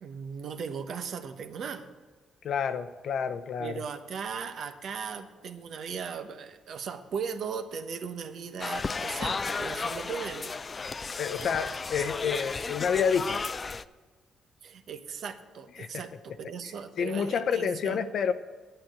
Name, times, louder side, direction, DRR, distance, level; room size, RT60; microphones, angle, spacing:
voice 1, 0.0-1.9 3.6-10.6 14.6-18.0, right 6 dB, 65° right, 8 dB, 1.0 m, -37 dB
voice 2, 2.4-3.7 11.2-13.5 15.8-16.0 17.0-18.3, left 7 dB, 65° left, 10 dB, 0.7 m, -29 dB
sound 1, 8.6-13.8, left 4 dB, 35° left, 0.4 m, -34 dB
8.9 x 8.8 x 7.9 m, 1.4 s
cardioid pair, 90°, 0 cm